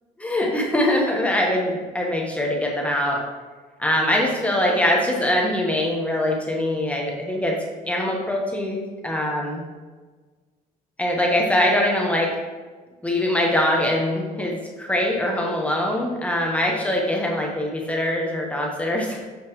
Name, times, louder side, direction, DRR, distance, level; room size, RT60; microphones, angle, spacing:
voice 1, 0.2-3.2 3.8-7.6 7.9-9.6 11.0-12.4 13.0-19.3, left 1 dB, 10° left, -1 dB, 1.2 m, -23 dB
7.0 x 5.0 x 3.1 m, 1.4 s
cardioid pair, 110°, 17 cm